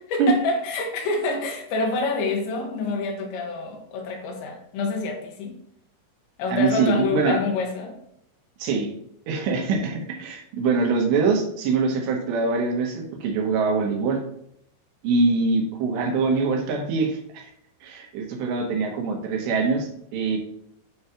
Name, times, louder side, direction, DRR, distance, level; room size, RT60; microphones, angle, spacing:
voice 1, 0.1-5.6 6.4-8.0, left 3 dB, 80° left, 2 dB, 3.5 m, -27 dB
voice 2, 6.5-7.4 8.6-8.9 9.3-14.2 15.0-17.5 17.8-20.4, right 4 dB, 75° right, 2 dB, 3.3 m, -23 dB
9.4 x 3.2 x 5.6 m, 0.73 s
omnidirectional pair, 5.3 m